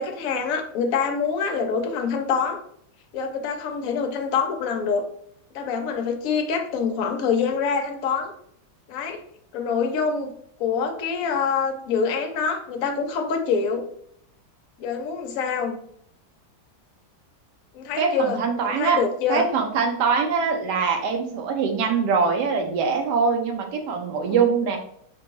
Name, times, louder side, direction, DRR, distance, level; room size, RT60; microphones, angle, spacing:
voice 1, 0.0-2.6 3.1-5.0 5.5-8.3 8.9-9.2 9.5-10.3 10.6-13.9 14.8-15.8 17.7-19.4 24.3-24.4, left 5 dB, 65° left, 4 dB, 0.9 m, -25 dB
voice 2, 18.0-19.0 19.3-24.8, right 5 dB, 80° right, 4 dB, 1.2 m, -23 dB
5.1 x 2.2 x 3.0 m, 0.67 s
omnidirectional pair, 1.8 m